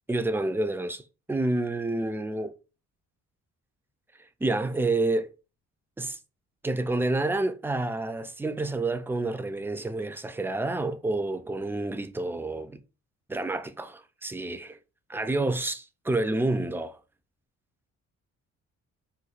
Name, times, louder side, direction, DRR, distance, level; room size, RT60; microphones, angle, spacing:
voice 1, 0.1-2.5 4.2-5.3 6.0-6.2 6.6-12.8 13.3-14.8 15.1-17.0, right 2 dB, 5° right, 0.4 m, -29 dB
4.2 x 2.3 x 2.4 m
cardioid pair, 90°, 30 cm